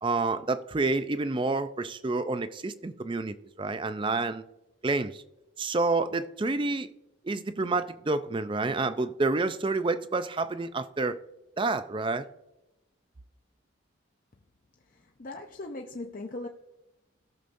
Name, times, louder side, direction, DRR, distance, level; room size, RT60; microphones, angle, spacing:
voice 1, 0.0-4.4 4.8-5.2 5.6-6.9 7.2-11.2 11.6-12.3, right 3 dB, 25° right, 0.4 m, -29 dB
voice 2, 15.2-16.5, left 2 dB, 40° left, 0.6 m, -38 dB
17.5 x 6.8 x 2.6 m
head